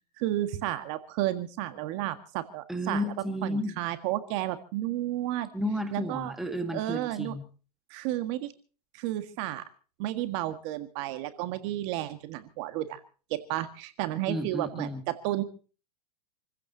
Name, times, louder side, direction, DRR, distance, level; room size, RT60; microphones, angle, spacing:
voice 1, 0.2-3.0 3.4-5.5 5.9-6.3 6.7-7.4 7.9-8.5 8.9-9.6 10.0-13.0 13.3-15.4, right 14 dB, 45° right, 10 dB, 1.7 m, -32 dB
voice 2, 2.7-3.8 5.5-7.4 14.3-15.0, equal, ahead, 6 dB, 2.0 m, -32 dB
28.0 x 15.5 x 2.8 m, 0.38 s
hypercardioid pair, 135°, 21 cm